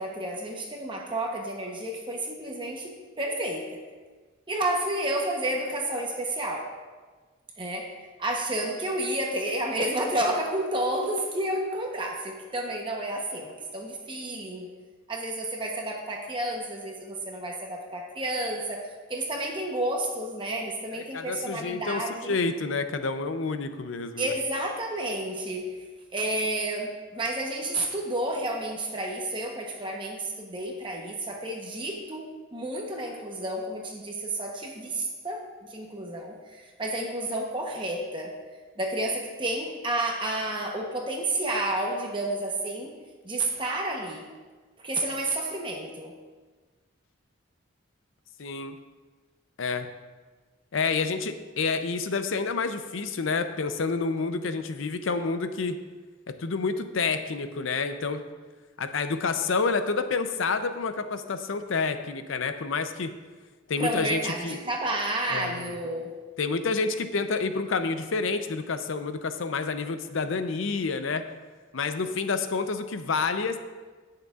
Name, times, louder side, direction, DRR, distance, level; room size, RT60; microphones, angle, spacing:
voice 1, 0.0-3.8 4.5-6.7 7.6-7.9 8.2-14.7 15.1-18.8 19.1-22.4 24.2-25.9 26.1-38.3 38.8-42.9 43.2-44.3 44.8-46.1 63.8-66.1, right 1 dB, 25° right, 0 dB, 0.9 m, -31 dB
voice 2, 21.1-24.3 48.4-48.8 49.6-49.9 50.7-55.8 56.3-58.2 58.8-63.2 63.7-64.6 65.3-65.7 66.4-71.3 71.7-73.6, left 4 dB, 80° left, 9 dB, 0.6 m, -29 dB
17.0 x 6.6 x 2.4 m, 1.4 s
head